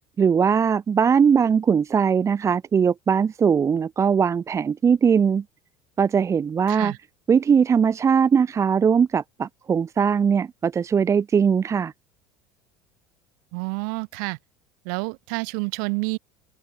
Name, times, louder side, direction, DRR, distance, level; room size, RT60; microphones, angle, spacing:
voice 1, 0.2-5.4 6.0-6.9 7.3-11.9, right 6 dB, 30° right, 0.9 m, -20 dB
voice 2, 13.5-14.4 14.9-16.2, right 38 dB, 70° right, 7.4 m, -28 dB
hypercardioid pair, 80°, 10 cm